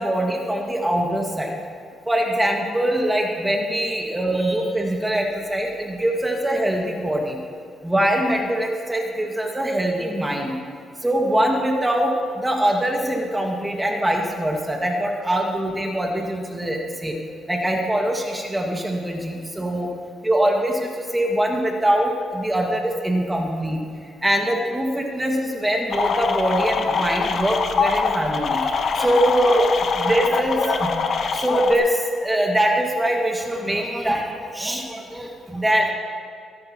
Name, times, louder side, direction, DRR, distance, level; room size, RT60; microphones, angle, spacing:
voice 1, 0.0-1.5 2.1-7.4 7.8-10.5 11.0-17.1 17.5-19.9 20.2-23.8 24.2-30.9 31.3-35.9, right 1 dB, 10° right, 0 dB, 1.9 m, -23 dB
sound 1, 25.9-31.8, left 5 dB, 55° left, 1.0 m, -24 dB
22.5 x 10.5 x 3.0 m, 2.3 s
cardioid pair, 90°, 0 cm